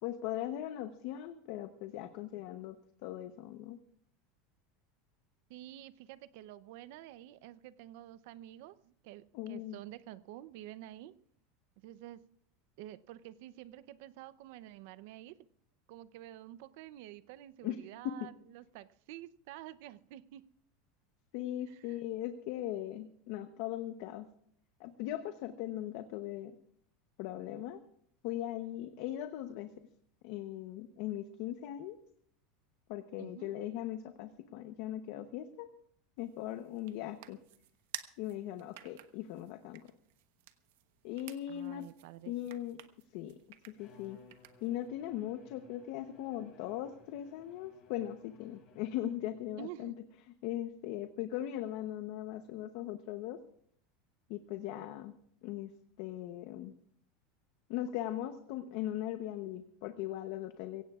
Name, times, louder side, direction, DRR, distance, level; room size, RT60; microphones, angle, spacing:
voice 1, 0.0-2.8 3.0-3.8 9.3-9.8 17.6-17.8 18.0-18.3 21.3-24.3 24.8-26.5 27.2-27.8 28.2-29.7 30.2-32.0 32.9-35.7 36.2-37.4 38.2-39.8 41.0-41.9 42.3-42.8 43.1-43.4 43.7-44.2 44.6-49.9 50.4-53.4 54.3-55.1 55.4-55.7 56.0-56.7 57.7-60.8, left 12 dB, 50° left, 9 dB, 0.8 m, -39 dB
voice 2, 5.5-11.1 11.8-12.3 12.8-15.4 15.9-20.4 21.7-22.0 33.2-33.5 41.5-42.3 49.6-49.9, right 13 dB, 55° right, 16 dB, 0.6 m, -49 dB
sound 1, 36.2-44.9, right 13 dB, 70° right, 1.1 m, -53 dB
Bowed string instrument, 43.8-49.4, left 4 dB, 30° left, 3.6 m, -61 dB
23.5 x 16.5 x 2.4 m, 0.64 s
supercardioid pair, 175°, 0 cm